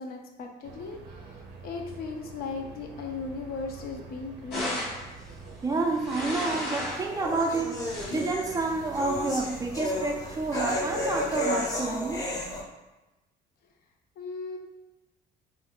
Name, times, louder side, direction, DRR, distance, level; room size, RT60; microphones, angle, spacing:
voice 1, 0.0-4.9 14.2-14.6, left 4 dB, 65° left, 3 dB, 0.5 m, -37 dB
sound 1, 0.6-11.4, right 4 dB, 85° right, 0.5 m, -46 dB
sound 2, 4.5-5.1 5.8-7.1 7.6-8.3 9.1-9.5, left 1 dB, 85° left, 1.0 m, -34 dB
voice 2, 5.6-12.3, right 3 dB, 20° right, 2 dB, 0.3 m, -29 dB
sound 3, 6.2-12.6, left 1 dB, 20° left, 0.6 m, -32 dB
2.5 x 2.1 x 3.6 m, 1.0 s
cardioid pair, 110°, 17 cm